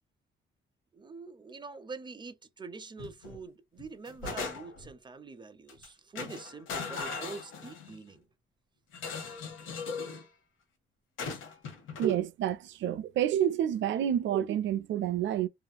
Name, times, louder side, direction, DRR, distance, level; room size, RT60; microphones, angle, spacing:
voice 1, 0.9-8.3, right 4 dB, 20° right, 0.6 m, -45 dB
sound 1, 3.0-3.4 3.8-4.9 5.7-5.9 6.1-8.0 8.9-10.3 11.2-12.2, left 4 dB, 85° left, 1.1 m, -39 dB
voice 2, 12.0-15.5, right 10 dB, 70° right, 0.5 m, -29 dB
2.8 x 2.5 x 2.2 m
cardioid pair, 90°, 20 cm